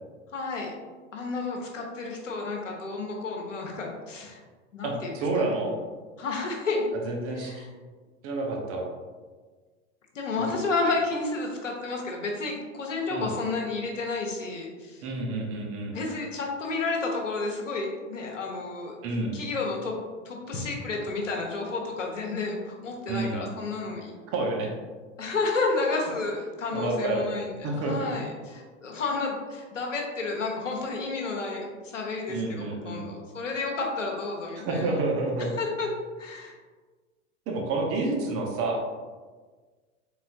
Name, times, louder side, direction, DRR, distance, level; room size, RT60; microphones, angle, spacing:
voice 1, 0.3-0.7 1.1-4.4 4.7-5.1 6.2-6.8 7.4-7.7 10.1-15.0 15.9-18.9 19.3-20.0 20.2-24.1 25.2-35.0 35.6-35.9 36.2-36.6, left 3 dB, 85° left, 0 dB, 1.0 m, -31 dB
voice 2, 4.8-5.7 7.0-7.6 8.2-8.8 13.1-13.3 15.0-16.0 19.0-19.4 23.1-23.4 24.3-24.7 26.7-27.3 27.6-28.1 32.3-33.1 34.6-35.5 37.5-38.8, right 2 dB, 40° right, 0 dB, 1.0 m, -29 dB
4.1 x 3.8 x 2.6 m, 1.4 s
hypercardioid pair, 90°, 37 cm